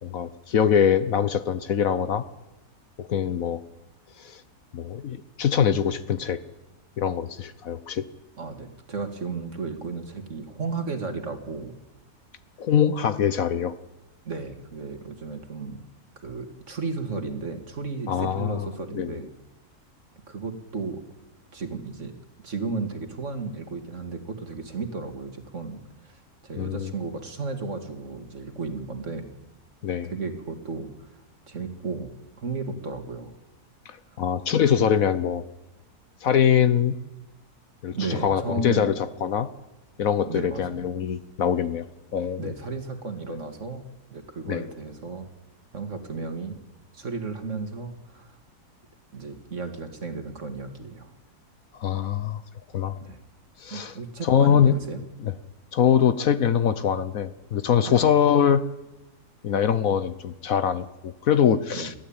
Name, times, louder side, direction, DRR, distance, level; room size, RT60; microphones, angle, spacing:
voice 1, 0.0-2.2 3.0-3.6 4.2-4.4 4.7-6.4 7.0-8.1 12.6-13.7 18.1-18.7 18.9-19.2 26.6-26.9 29.8-30.1 33.9-35.4 36.2-37.0 37.8-39.5 40.0-41.9 42.1-42.5 44.5-44.6 51.7-52.4 52.7-53.0 53.6-53.9 54.2-54.8 55.2-55.3 55.7-58.6 59.4-61.9, left 8 dB, 65° left, 13 dB, 1.2 m, -23 dB
voice 2, 8.4-11.7 14.3-15.8 16.2-19.3 20.3-21.0 21.5-22.1 22.4-29.3 30.0-31.1 31.5-33.3 37.9-38.9 40.2-40.9 42.4-43.8 44.1-45.3 45.7-46.6 46.9-48.4 49.1-51.1 53.0-53.2 53.7-55.0 57.9-58.1 61.7-61.9, right 4 dB, 50° right, 6 dB, 2.4 m, -34 dB
22.0 x 14.5 x 8.8 m, 1.0 s
omnidirectional pair, 1.7 m